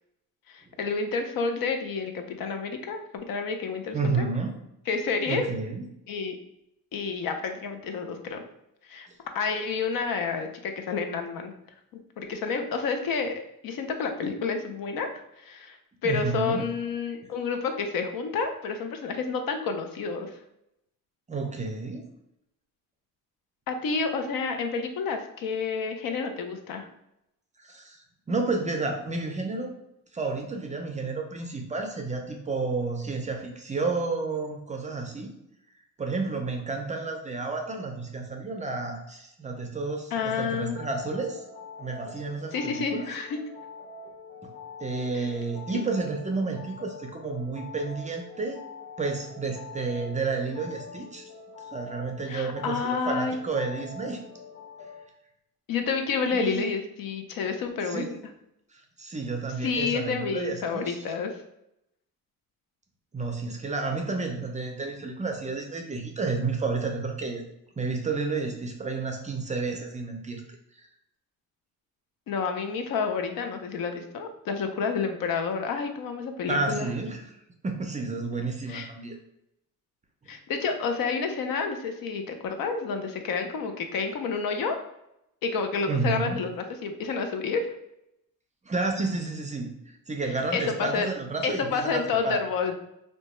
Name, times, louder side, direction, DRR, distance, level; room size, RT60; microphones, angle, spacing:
voice 1, 0.5-4.3 4.9-5.5 6.1-6.4 6.9-8.4 8.9-9.1 9.3-11.5 12.2-15.1 15.4-20.4 23.7-26.9 40.1-40.8 42.5-43.4 45.1-45.3 52.3-53.4 55.7-58.2 59.6-61.4 72.3-76.9 78.7-78.9 80.3-84.8 85.4-87.7 90.5-91.1 91.4-92.8, left 5 dB, 70° left, 6 dB, 0.6 m, -29 dB
voice 2, 3.9-4.5 5.3-5.8 16.0-16.7 21.3-22.0 27.6-29.7 30.1-35.3 36.0-41.4 41.8-43.1 44.4-44.5 44.8-48.6 49.0-51.2 51.7-54.2 56.3-56.7 57.9-58.1 58.7-61.0 63.1-67.4 67.8-70.4 76.5-77.2 77.6-79.2 85.9-86.4 88.7-92.4, right 3 dB, 20° right, 3 dB, 0.4 m, -31 dB
sound 1, 40.8-55.0, left 4 dB, 40° left, 0.9 m, -44 dB
2.9 x 2.2 x 4.1 m, 0.82 s
cardioid pair, 125°, 36 cm